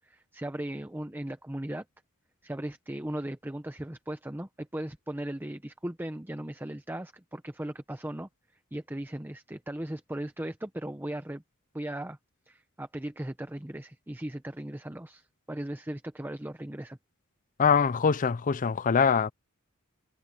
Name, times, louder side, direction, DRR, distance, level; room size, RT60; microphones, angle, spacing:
voice 1, 0.0-1.8 2.4-8.3 8.7-11.4 11.7-12.2 12.5-17.0, right 1 dB, 10° right, 0.8 m, -37 dB
voice 2, 17.6-19.3, left 6 dB, 35° left, 0.5 m, -23 dB
head